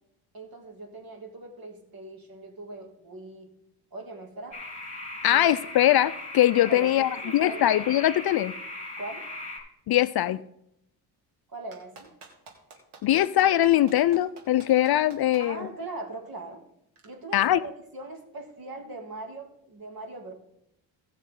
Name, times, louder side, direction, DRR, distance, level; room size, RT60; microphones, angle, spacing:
voice 1, 0.3-3.5 3.9-4.6 5.3-5.5 6.6-7.7 9.0-9.3 11.5-12.1 15.4-16.6 17.0-20.3, right 2 dB, 45° right, 2.9 m, -40 dB
sound 1, 4.5-9.6, left 2 dB, 15° left, 4.6 m, -38 dB
voice 2, 5.2-8.5 9.9-10.4 13.0-15.7 17.3-17.6, left 13 dB, 50° left, 0.5 m, -22 dB
Clapping, 11.7-15.4 17.0-17.1, right 4 dB, 80° right, 2.5 m, -48 dB
17.5 x 6.4 x 3.8 m
supercardioid pair, 70°, 48 cm